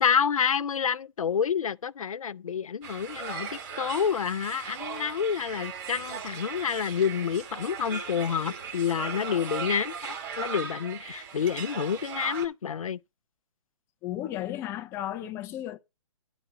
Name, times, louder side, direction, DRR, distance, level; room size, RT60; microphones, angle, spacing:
voice 1, 0.0-13.0, left 7 dB, 90° left, 0.5 m, -28 dB
sound 1, 2.8-12.5, right 6 dB, 30° right, 2.5 m, -38 dB
voice 2, 14.0-15.8, left 12 dB, 15° left, 0.5 m, -34 dB
10.5 x 4.0 x 6.6 m
hypercardioid pair, 145°, 17 cm